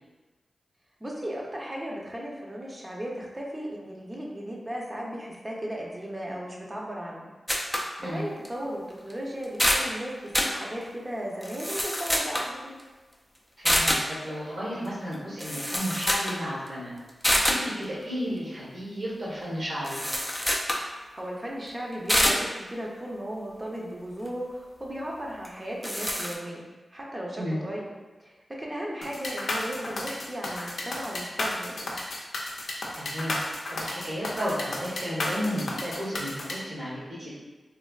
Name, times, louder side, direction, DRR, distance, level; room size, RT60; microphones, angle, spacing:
voice 1, 1.0-7.3 7.7-12.8 21.1-26.6 26.9-27.9 28.2-28.3 28.6-31.9, equal, 25° right, -3 dB, 0.7 m, -36 dB
sound 1, 7.5-7.9 8.4-8.5 9.1-9.2 9.4-9.9 10.3-10.6 11.4-12.5 13.7-14.1 15.1-15.2 15.4-16.4 16.7-16.8 17.2-17.7 19.8-20.9 22.1-22.4 25.4-25.5 25.8-26.3, equal, 5° left, 0.4 m, -26 dB
voice 2, 13.6-16.9 17.3-20.0 27.4-27.6 32.9-37.3, equal, 65° right, -7 dB, 1.3 m, -33 dB
sound 2, 29.0-36.5, left 2 dB, 80° left, 0.4 m, -32 dB
3.3 x 2.4 x 2.4 m, 1.2 s
cardioid pair, 45°, 0 cm